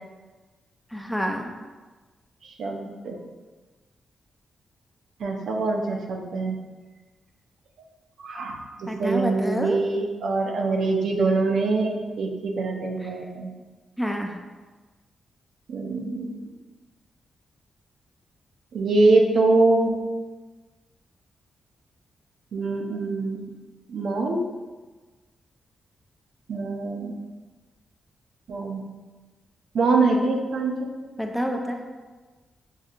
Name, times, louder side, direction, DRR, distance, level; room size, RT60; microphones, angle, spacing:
voice 1, 0.9-1.5 8.9-9.8 13.0-13.1 14.0-14.3 31.2-31.8, equal, 5° left, 2 dB, 0.5 m, -28 dB
voice 2, 2.6-3.2 5.2-6.6 8.2-13.5 15.7-16.4 18.7-19.9 22.5-23.4 23.9-24.4 26.5-27.2 28.5-28.8 29.7-30.9, right 3 dB, 75° right, 1 dB, 0.5 m, -24 dB
5.6 x 2.7 x 2.4 m, 1.3 s
cardioid pair, 85°, 0 cm